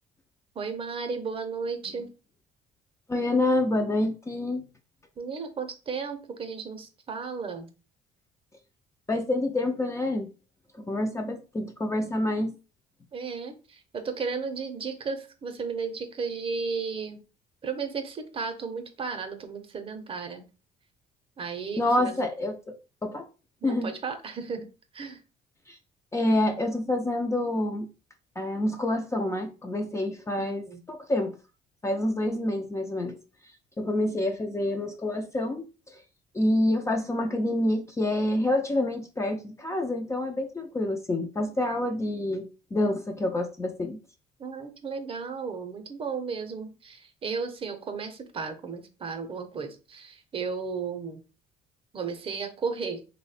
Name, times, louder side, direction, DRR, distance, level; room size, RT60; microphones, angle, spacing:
voice 1, 0.5-2.1 5.2-7.7 13.1-17.2 17.6-20.4 21.4-22.1 23.6-24.7 24.9-25.2 30.4-30.8 44.4-51.2 51.9-53.0, right 5 dB, 35° right, 7 dB, 0.6 m, -34 dB
voice 2, 3.1-4.7 9.1-10.3 10.8-12.5 21.8-22.8 23.0-23.2 23.6-23.9 25.7-25.8 26.1-27.9 28.4-31.4 31.8-33.2 33.8-35.7 35.9-36.0 36.3-44.0, left 1 dB, 15° left, 4 dB, 0.4 m, -27 dB
3.0 x 2.1 x 4.0 m, 0.33 s
cardioid pair, 110°, 17 cm